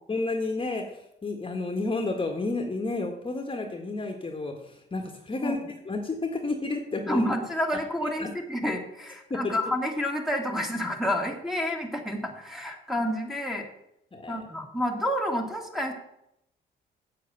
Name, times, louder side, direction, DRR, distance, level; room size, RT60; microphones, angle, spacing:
voice 1, 0.1-0.8 1.2-5.6 5.9-7.2 8.0-8.3 9.3-9.6 14.1-14.5, left 3 dB, 25° left, 4 dB, 1.6 m, -31 dB
voice 2, 7.1-13.7 14.3-15.9, equal, ahead, 2 dB, 2.1 m, -29 dB
8.0 x 7.6 x 6.9 m, 0.80 s
cardioid pair, 90°, 20 cm